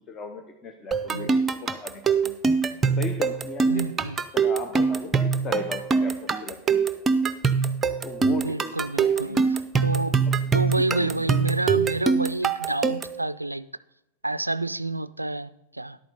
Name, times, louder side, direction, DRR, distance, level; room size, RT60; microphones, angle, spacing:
voice 1, 0.0-2.3 3.0-3.8 4.3-7.1 8.0-8.8 9.1-9.4 10.3-11.1, left 4 dB, 25° left, 0.8 m, -37 dB
sound 1, 0.9-13.2, right 5 dB, 15° right, 0.6 m, -23 dB
voice 2, 3.7-4.2 8.2-10.2 10.5-13.7 14.2-16.0, right 2 dB, 85° right, 0.3 m, -29 dB
11.0 x 8.8 x 4.1 m
figure-of-eight pair, 90°, 0 cm